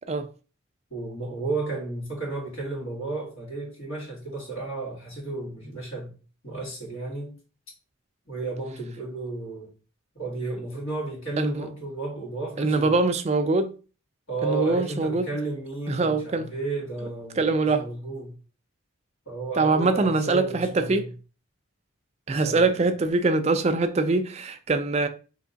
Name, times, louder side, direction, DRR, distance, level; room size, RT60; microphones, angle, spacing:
voice 1, 0.9-6.2 6.4-7.4 8.3-9.7 10.2-13.0 14.3-18.3 19.3-21.1 22.3-22.9, right 3 dB, 75° left, 2.0 m, -33 dB
voice 2, 11.4-11.7 12.6-13.7 14.4-15.3 15.9-16.5 17.4-17.9 19.6-21.1 22.3-25.1, right 3 dB, 30° right, 0.4 m, -23 dB
3.5 x 2.9 x 3.9 m
head